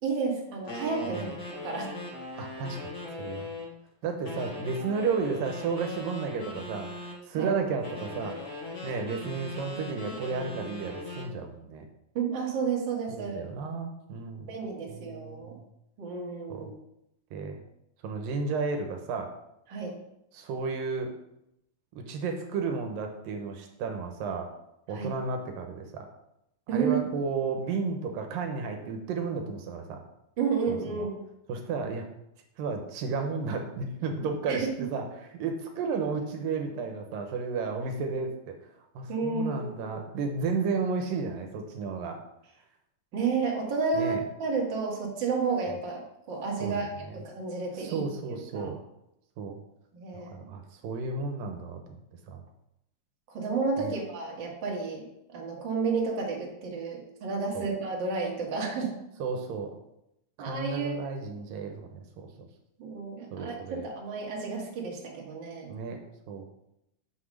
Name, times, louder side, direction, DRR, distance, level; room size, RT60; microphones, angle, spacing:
voice 1, 0.0-2.0 7.4-7.5 12.1-13.4 14.5-15.5 16.0-16.7 19.7-19.9 24.9-25.1 26.7-27.0 30.4-31.1 34.5-34.9 39.1-40.0 43.1-48.0 48.3-48.7 49.9-50.5 53.3-55.0 55.3-58.9 60.4-60.9 62.8-65.8, right 5 dB, 40° right, -2 dB, 2.0 m, -31 dB
sound 1, 0.7-3.7 4.2-7.2 7.8-11.3, left 2 dB, 80° left, 0.6 m, -40 dB
voice 2, 2.4-2.9 3.2-3.5 4.0-8.4 8.8-11.8 13.1-14.5 14.9-15.6 16.5-16.7 17.3-17.6 18.0-19.3 20.3-21.1 22.0-24.5 24.9-26.1 26.7-30.0 30.7-31.1 31.5-32.1 32.6-38.5 39.0-42.2 43.9-44.2 46.6-47.2 47.7-48.8 49.4-49.6 50.3-51.8 52.3-52.4 53.8-53.9 57.5-57.7 59.2-59.7 60.4-62.5 63.3-63.9 65.7-66.0 66.3-66.5, right 4 dB, 85° right, 4 dB, 2.6 m, -33 dB
6.2 x 6.0 x 6.4 m, 0.84 s
omnidirectional pair, 3.9 m